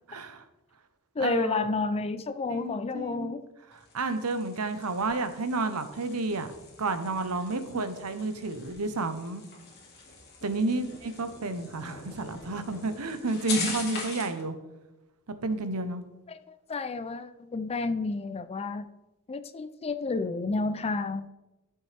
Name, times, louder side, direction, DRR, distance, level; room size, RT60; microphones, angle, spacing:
voice 1, 0.1-0.4 1.2-1.7 2.5-3.3 3.9-6.5 6.8-9.4 10.4-14.5 15.4-16.0, right 3 dB, 85° right, 0.9 m, -31 dB
voice 2, 1.1-3.4 7.7-7.9 10.6-10.8 16.3-18.9 19.3-21.3, left 3 dB, 25° left, 0.4 m, -31 dB
sound 1, 3.7-14.4, left 4 dB, 50° left, 2.2 m, -42 dB
11.5 x 6.9 x 3.4 m
head